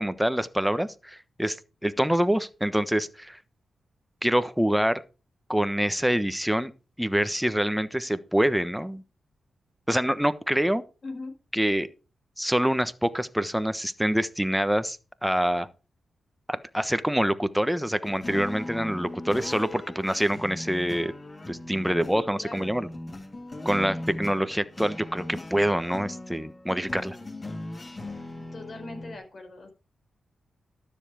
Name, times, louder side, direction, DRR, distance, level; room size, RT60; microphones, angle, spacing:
voice 1, 0.0-1.6 1.8-3.4 4.2-5.0 5.5-6.7 7.0-9.0 9.9-10.8 11.5-11.9 12.4-15.7 16.5-21.1 21.5-22.9 23.6-27.2, equal, 5° right, 1.2 m, -26 dB
sound 1, 18.0-29.2, left 1 dB, 35° left, 1.7 m, -39 dB
voice 2, 22.1-22.7 23.8-24.1 28.5-29.7, left 2 dB, 55° left, 4.9 m, -40 dB
13.0 x 7.2 x 5.0 m
supercardioid pair, 50°, 0 cm